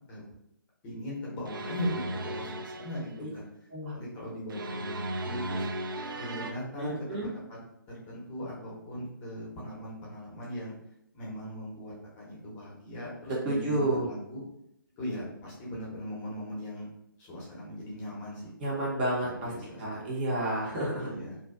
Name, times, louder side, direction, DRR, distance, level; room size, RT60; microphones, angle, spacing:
voice 1, 0.8-3.4 3.9-5.7 6.2-7.6 7.9-10.7 11.1-14.4 15.0-16.9 17.2-18.4 19.2-20.0 21.0-21.4, equal, 15° left, -6 dB, 0.7 m, -39 dB
sound 1, 1.4-3.1 4.5-6.5, right 1 dB, 70° right, 0.4 m, -36 dB
voice 2, 6.8-7.3 13.4-14.0 18.6-19.5 19.8-21.1, right 1 dB, 30° right, -5 dB, 0.6 m, -30 dB
2.5 x 2.2 x 2.3 m, 0.77 s
figure-of-eight pair, 145°, 12 cm